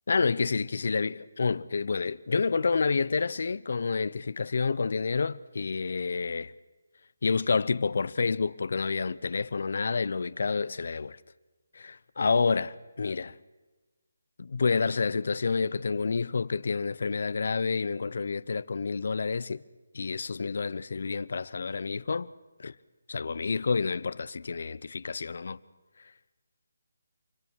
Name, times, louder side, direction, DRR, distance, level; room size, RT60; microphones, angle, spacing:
voice 1, 0.1-6.5 7.2-11.2 11.7-13.3 14.4-19.6 19.9-22.3 22.6-22.7 23.1-25.6, left 4 dB, 60° left, 0.9 m, -29 dB
28.0 x 24.5 x 6.4 m
figure-of-eight pair, 160°, 0 cm